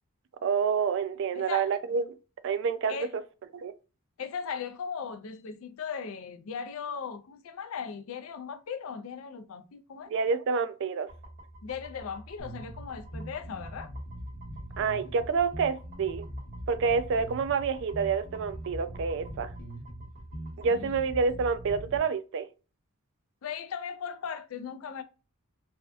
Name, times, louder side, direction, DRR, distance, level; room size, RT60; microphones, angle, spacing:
voice 1, 0.4-2.0 2.4-3.0 3.5-3.7 10.1-11.1 14.8-16.3 16.7-19.5 20.6-22.5, right 5 dB, 60° right, 0.3 m, -28 dB
voice 2, 1.4-1.7 2.9-3.1 4.2-10.2 11.6-13.9 20.7-20.9 23.4-25.0, left 6 dB, 70° left, 0.4 m, -38 dB
sound 1, 11.1-20.8, right 1 dB, 40° right, 1.6 m, -49 dB
sound 2, 12.4-22.0, right 1 dB, 40° left, 1.1 m, -42 dB
3.4 x 2.3 x 2.5 m
head